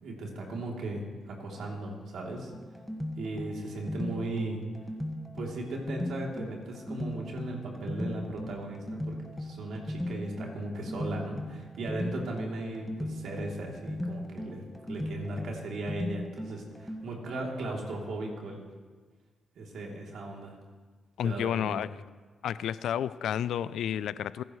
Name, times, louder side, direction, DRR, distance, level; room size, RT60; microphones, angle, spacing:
voice 1, 0.0-2.5 3.2-4.6 5.3-18.6 19.6-20.6 21.2-21.8, right 2 dB, 75° right, -1 dB, 3.1 m, -37 dB
sound 1, 2.5-17.4, left 1 dB, 5° left, 1.7 m, -38 dB
voice 2, 21.2-22.0 22.4-24.4, left 9 dB, 80° left, 17 dB, 0.4 m, -31 dB
26.5 x 10.5 x 3.2 m, 1.4 s
supercardioid pair, 50°, 0 cm